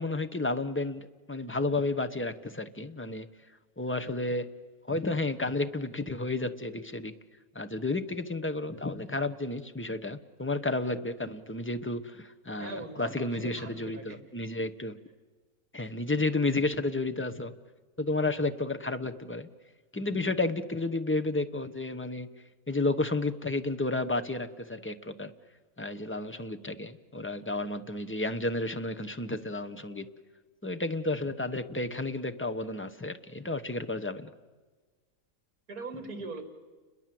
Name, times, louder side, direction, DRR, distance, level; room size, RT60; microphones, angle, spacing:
voice 1, 0.0-3.3 3.8-4.5 4.9-7.1 7.5-14.9 15.7-17.5 18.0-19.5 19.9-22.3 22.7-25.3 25.8-30.1 30.6-34.3, left 2 dB, 10° left, 9 dB, 0.7 m, -32 dB
voice 2, 12.6-14.2 35.7-36.4, right 3 dB, 65° right, 7 dB, 3.3 m, -41 dB
30.0 x 21.5 x 7.7 m, 1.3 s
omnidirectional pair, 1.6 m